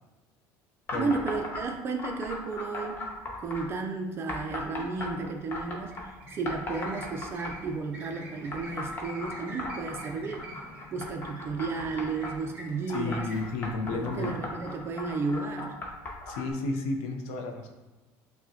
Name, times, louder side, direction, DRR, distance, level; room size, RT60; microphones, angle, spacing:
sound 1, 0.9-1.6 2.0-3.7 4.3-6.1 6.5-7.8 8.5-12.3 12.9-16.5, left 2 dB, 30° left, 0.7 m, -37 dB
voice 1, 0.9-3.0 3.4-10.5 10.9-13.3 13.9-15.8, right 4 dB, 35° right, 3 dB, 0.3 m, -33 dB
sound 2, 5.5-14.7, equal, 20° right, 1.2 m, -47 dB
voice 2, 12.9-14.5 16.3-17.7, left 3 dB, 90° left, 3 dB, 0.5 m, -32 dB
5.9 x 2.1 x 2.7 m, 1.2 s
cardioid pair, 135°, 7 cm